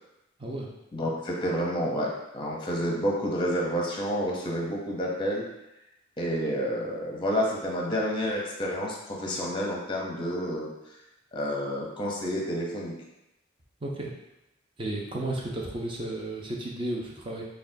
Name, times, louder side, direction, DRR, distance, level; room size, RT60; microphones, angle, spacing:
voice 1, 0.9-5.5 6.2-10.7 11.3-12.9, equal, 25° left, -2 dB, 0.7 m, -29 dB
voice 2, 13.8-14.1 14.8-17.5, right 1 dB, 25° right, -2 dB, 0.6 m, -33 dB
5.8 x 2.3 x 2.6 m, 0.91 s
head